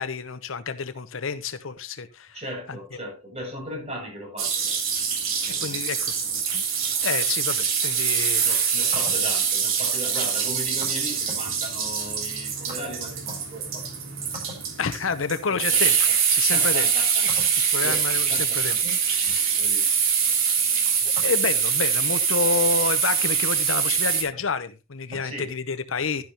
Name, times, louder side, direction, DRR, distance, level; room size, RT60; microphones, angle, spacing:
voice 1, 0.0-2.3 2.7-2.8 5.6-6.1 6.5-6.6 7.0-8.4 14.8-16.9 17.7-18.8 19.3-20.0 21.0-26.2, left 5 dB, 80° left, 0.8 m, -29 dB
voice 2, 2.3-4.8 5.5-5.8 8.4-13.9 14.5-14.6 15.5-15.8 16.5-20.0 21.1-21.2 25.1-25.6, equal, 30° right, 7.0 m, -37 dB
sound 1, 4.4-24.2, right 6 dB, 90° right, 3.1 m, -24 dB
12.0 x 10.5 x 2.9 m
head